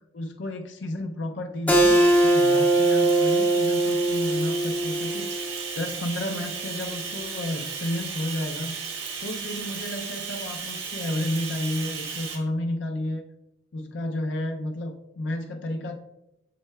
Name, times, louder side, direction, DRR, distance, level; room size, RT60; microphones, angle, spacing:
voice 1, 0.1-2.0 2.2-8.7 9.2-13.2 13.7-16.0, left 1 dB, 65° left, 4 dB, 0.5 m, -32 dB
Keyboard (musical), 1.7-6.9, right 2 dB, 10° left, 0.4 m, -22 dB
Bathtub (filling or washing), 1.7-12.4, right 5 dB, 85° right, 1.4 m, -35 dB
7.6 x 6.4 x 2.3 m, 0.92 s
head